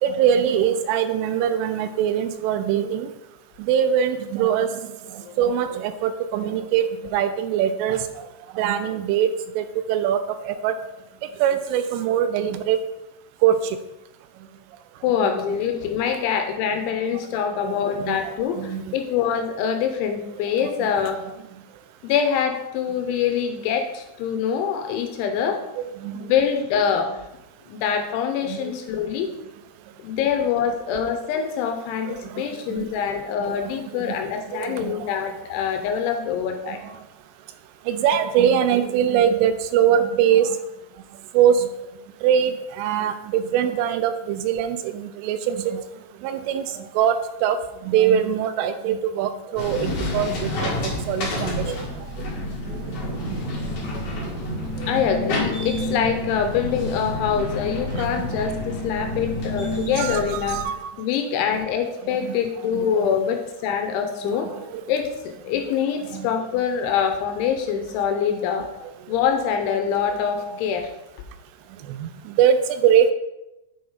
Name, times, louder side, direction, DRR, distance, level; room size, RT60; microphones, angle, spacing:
voice 1, 0.0-3.1 3.7-4.8 5.1-8.0 8.6-9.3 9.6-10.8 11.4-12.8 13.4-13.6 15.5-15.6 17.6-18.9 20.8-20.9 25.8-26.2 28.5-28.6 32.1-32.3 32.7-32.9 33.4-33.5 33.9-34.2 34.5-35.0 36.6-36.8 37.9-40.6 41.3-41.7 42.2-45.8 46.2-47.6 47.8-51.8 53.3-53.4 54.8-55.1 58.0-58.4 59.9-60.9 61.5-61.6 62.2-62.4 62.7-63.1 64.5-64.6 66.1-66.3 71.9-73.1, right 9 dB, 85° right, 10 dB, 3.0 m, -22 dB
voice 2, 15.0-21.2 22.0-25.6 26.1-27.2 27.7-29.3 30.0-36.8 54.9-60.6 61.0-64.5 64.9-68.7 69.1-70.9, left 7 dB, 85° left, 6 dB, 2.9 m, -24 dB
sound 1, 49.6-60.6, left 1 dB, 55° left, 1.7 m, -29 dB
7.8 x 5.4 x 4.9 m, 0.95 s
omnidirectional pair, 5.8 m